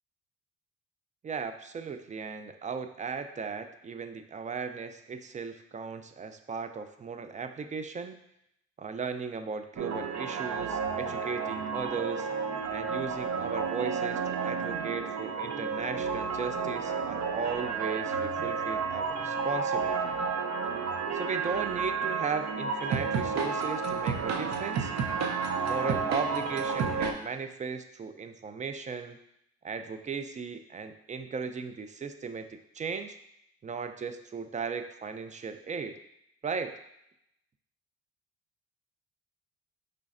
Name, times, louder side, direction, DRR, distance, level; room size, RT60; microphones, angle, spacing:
voice 1, 1.2-8.2 8.8-12.3 12.7-20.2 21.1-24.9 25.6-29.2 29.6-32.5 32.7-33.2 33.6-36.0 36.4-36.8, right 5 dB, 25° right, 8 dB, 0.3 m, -36 dB
sound 1, 9.8-27.1, right 5 dB, 60° right, 0.6 m, -31 dB
5.0 x 3.3 x 2.4 m, 0.78 s
supercardioid pair, 80°, 31 cm